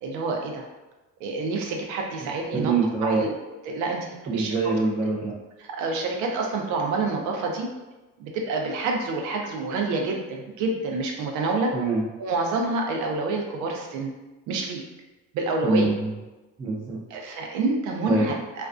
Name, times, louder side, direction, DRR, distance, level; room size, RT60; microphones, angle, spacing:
voice 1, 0.0-0.6 1.2-2.7 3.0-3.3 3.7-4.7 5.7-7.7 8.2-11.8 12.2-14.1 14.5-14.8 15.3-16.0 17.1-18.7, right 3 dB, 70° right, 1 dB, 0.6 m, -27 dB
voice 2, 2.5-3.2 4.3-5.3 11.7-12.1 15.6-16.1 16.6-17.0 18.1-18.3, right 3 dB, 15° right, -6 dB, 0.4 m, -24 dB
2.3 x 2.2 x 2.4 m, 1.1 s
cardioid pair, 125°, 31 cm